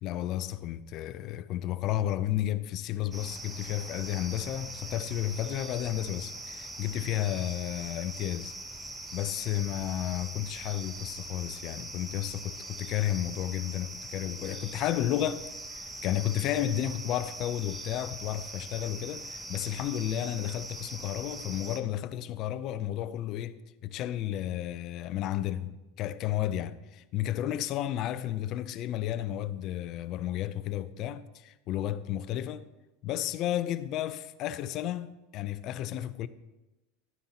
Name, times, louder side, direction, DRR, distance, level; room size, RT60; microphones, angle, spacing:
voice 1, 0.0-8.5 9.1-32.7 33.0-36.3, left 12 dB, 40° left, 0.5 m, -32 dB
sound 1, 3.1-21.8, right 2 dB, 10° right, 0.7 m, -42 dB
12.0 x 9.4 x 2.9 m
supercardioid pair, 145°, 0 cm